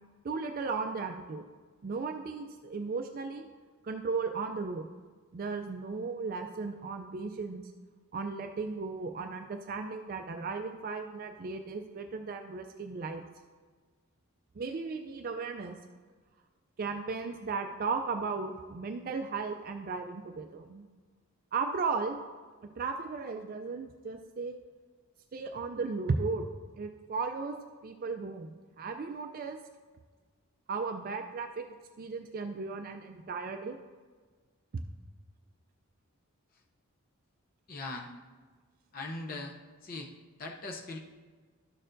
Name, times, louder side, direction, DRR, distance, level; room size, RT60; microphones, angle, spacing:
voice 1, 0.2-1.4 1.8-3.5 3.8-4.9 5.3-7.7 8.1-13.2 14.6-15.8 16.8-20.9 21.5-22.2 22.8-24.6 25.3-26.5 26.8-27.6 27.8-29.6 30.7-31.7 32.0-33.8 34.7-34.8, right 4 dB, 40° right, 6 dB, 0.3 m, -35 dB
voice 2, 37.7-38.1 38.9-39.5 39.8-40.1 40.4-41.0, left 2 dB, 40° left, 1 dB, 0.7 m, -39 dB
12.5 x 6.5 x 2.6 m, 1.5 s
head